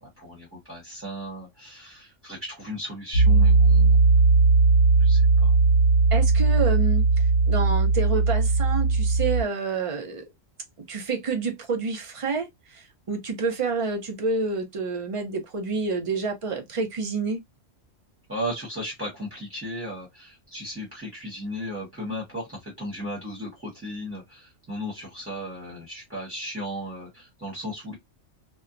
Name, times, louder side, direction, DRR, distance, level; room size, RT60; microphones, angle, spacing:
voice 1, 0.0-4.0 5.0-5.6 18.3-27.9, equal, 10° right, 1.0 m, -36 dB
Piano, 3.1-9.4, right 3 dB, 85° left, 1.2 m, -18 dB
voice 2, 6.1-10.2 10.9-17.4, right 4 dB, 40° right, 0.5 m, -28 dB
2.7 x 2.1 x 2.4 m
omnidirectional pair, 1.3 m